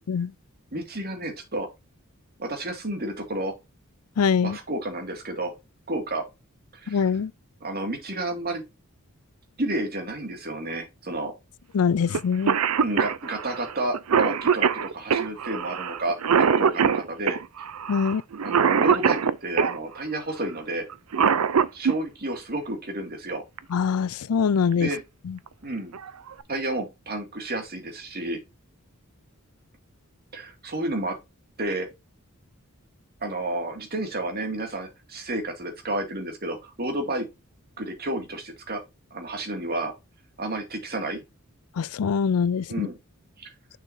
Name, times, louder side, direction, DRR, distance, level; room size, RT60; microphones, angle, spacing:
voice 1, 0.7-1.7 2.4-3.5 4.4-5.5 5.9-6.2 6.7-7.1 7.6-8.6 9.6-11.3 12.8-17.4 18.4-20.9 21.7-23.4 24.8-25.0 25.6-25.9 26.5-28.4 30.3-31.2 31.6-31.9 33.2-37.3 37.8-38.8 39.1-39.9 40.4-41.2 42.7-43.0 43.4-43.5, right 1 dB, 45° right, 2.3 m, -31 dB
voice 2, 4.2-4.6 6.9-7.3 11.7-12.6 17.9-18.2 23.7-24.9 25.3-25.4 41.8-42.9, left 6 dB, 80° left, 0.4 m, -23 dB
Cough, 12.1-12.2 12.5-19.8 20.9-22.0 23.6-23.7 24.7-25.0 25.5-25.6 25.9-26.4, right 6 dB, 80° right, 0.6 m, -23 dB
6.8 x 6.4 x 2.7 m
head